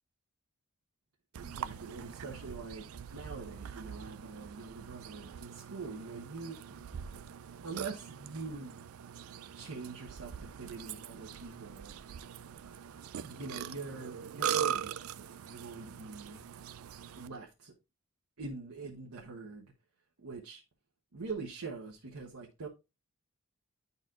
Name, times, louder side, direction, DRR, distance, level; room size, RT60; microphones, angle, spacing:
Burping eructation, 1.3-17.3, right 9 dB, 70° right, 0.4 m, -42 dB
voice 1, 1.3-2.9 3.1-6.8 7.6-8.8 9.5-11.9 13.2-16.4 17.2-17.7 18.4-19.7 20.2-20.6 21.1-22.7, right 4 dB, 90° right, 1.1 m, -44 dB
10.5 x 4.2 x 2.4 m
head